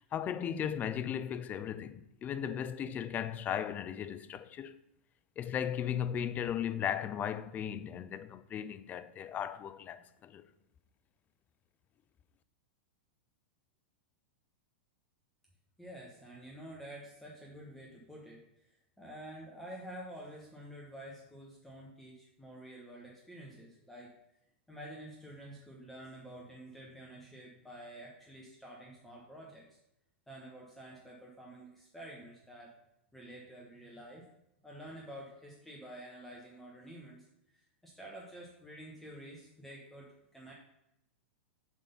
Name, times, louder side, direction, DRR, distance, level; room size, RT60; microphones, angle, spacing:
voice 1, 0.0-4.8 5.4-10.4, left 9 dB, 25° left, 0.4 m, -36 dB
voice 2, 15.8-18.7 19.0-24.1 24.7-29.8 30.3-32.7 33.1-34.3 34.6-37.3 37.5-40.5, right 1 dB, 5° left, 1.2 m, -49 dB
7.3 x 3.8 x 5.5 m
hypercardioid pair, 125°, 6 cm